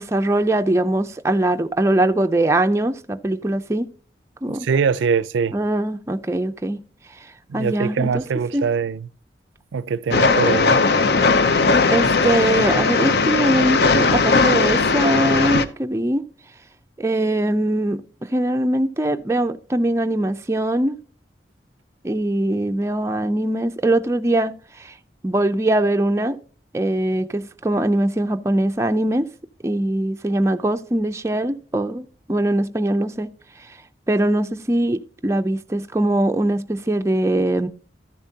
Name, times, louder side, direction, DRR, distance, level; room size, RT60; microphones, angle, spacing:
voice 1, 0.0-3.9 4.4-4.7 5.5-6.8 7.5-8.2 8.5-8.6 11.9-16.2 17.0-21.0 22.0-24.9 25.2-26.4 26.7-29.3 29.6-33.3 34.1-37.7, right 1 dB, 15° right, 0.4 m, -21 dB
voice 2, 4.5-5.6 7.5-9.1 9.7-10.8, right 6 dB, 90° right, 0.4 m, -23 dB
Train, 10.1-15.6, left 4 dB, 65° left, 0.6 m, -18 dB
13.0 x 7.0 x 2.7 m
head